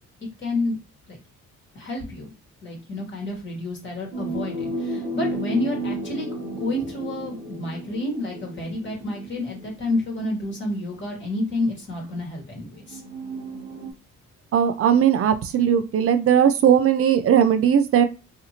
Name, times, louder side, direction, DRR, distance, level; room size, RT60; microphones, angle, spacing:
voice 1, 0.4-0.8 1.1-1.2 1.7-2.3 2.6-13.0, left 2 dB, 40° left, 0 dB, 1.3 m, -29 dB
sound 1, 4.1-10.0 10.9-11.0 12.8-13.9, right 1 dB, 15° right, 0.9 m, -33 dB
voice 2, 14.5-18.0, right 9 dB, 50° right, 10 dB, 0.5 m, -18 dB
2.6 x 2.4 x 2.8 m, 0.31 s
cardioid pair, 90°, 30 cm